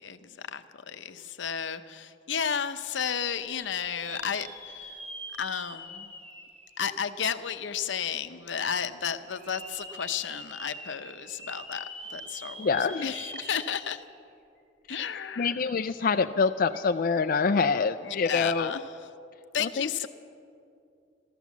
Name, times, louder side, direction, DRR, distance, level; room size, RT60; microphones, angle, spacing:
voice 1, 0.0-5.0 5.4-6.1 6.8-14.0 14.9-15.5 18.0-18.8 19.5-20.1, left 7 dB, 85° left, 10 dB, 0.7 m, -33 dB
sound 1, 3.6-7.6 8.1-8.2 9.2-14.2 14.6-14.7 16.6-16.8, right 1 dB, 35° right, 2.5 m, -44 dB
voice 2, 12.6-13.1 15.4-18.8 19.6-20.1, left 5 dB, 50° left, 8 dB, 0.4 m, -26 dB
14.0 x 13.5 x 7.2 m, 2.5 s
head